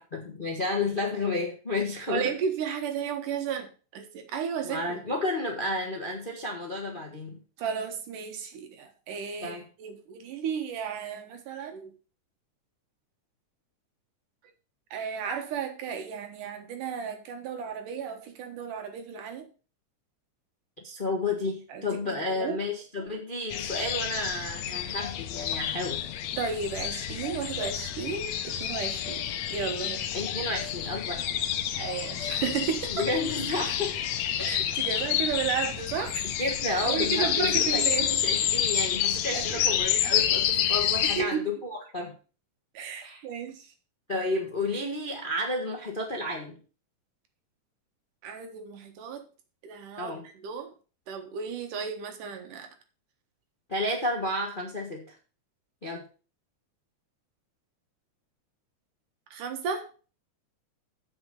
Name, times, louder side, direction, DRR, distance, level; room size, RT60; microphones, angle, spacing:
voice 1, 0.1-2.4 4.6-7.4 9.4-9.6 20.8-26.1 30.1-31.4 32.9-34.0 34.3-34.5 36.4-42.1 43.0-43.2 44.1-46.6 50.0-50.3 53.7-55.1 55.8-56.0, left 2 dB, 40° left, 1 dB, 0.7 m, -31 dB
voice 2, 2.1-5.0 7.6-11.9 14.9-19.5 21.7-21.9 22.3-22.6 26.4-30.0 31.7-33.0 34.4-36.3 36.9-38.1 39.3-39.6 41.0-41.4 42.7-43.7 48.2-49.2 49.6-50.7 51.1-52.7 59.3-59.9, right 7 dB, 90° right, 6 dB, 3.0 m, -33 dB
sound 1, 23.5-41.2, left 10 dB, 70° left, 1.9 m, -29 dB
8.0 x 6.2 x 6.4 m, 0.36 s
omnidirectional pair, 3.6 m